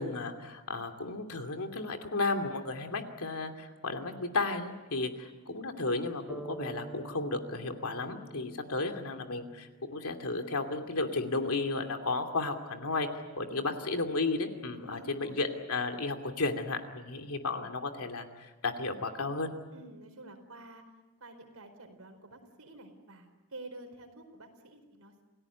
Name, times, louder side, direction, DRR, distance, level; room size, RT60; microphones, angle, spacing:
voice 1, 0.0-13.1 13.3-18.3 18.6-19.5, left 3 dB, 85° left, 5 dB, 2.7 m, -33 dB
sound 1, 6.3-10.2, right 2 dB, 5° right, 2.2 m, -47 dB
voice 2, 13.5-13.8 14.7-15.4 19.7-20.8 21.2-25.2, right 2 dB, 80° right, 5 dB, 4.7 m, -50 dB
28.5 x 17.5 x 9.5 m, 1.2 s
head